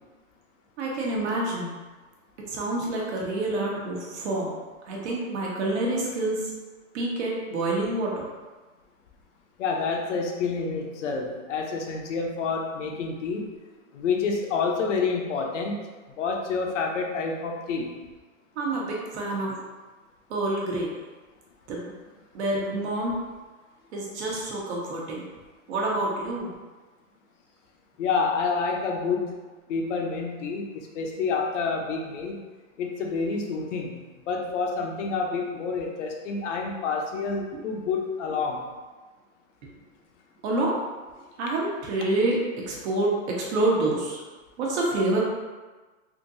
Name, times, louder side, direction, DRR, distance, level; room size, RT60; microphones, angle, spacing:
voice 1, 0.8-1.7 2.5-4.5 4.9-6.4 6.9-8.2 18.6-19.6 20.3-20.9 21.7-21.9 22.3-23.1 23.9-25.2 25.7-26.5 37.5-37.6 40.4-40.8 41.4-42.4 42.7-44.2 44.6-45.2, right 2 dB, 55° right, -3 dB, 1.0 m, -27 dB
voice 2, 9.6-13.5 13.9-15.8 16.2-17.9 28.0-29.4 29.7-32.4 32.8-34.0 34.3-38.6, left 4 dB, 60° left, 0 dB, 0.7 m, -28 dB
3.6 x 2.7 x 2.6 m, 1.3 s
hypercardioid pair, 145°, 40 cm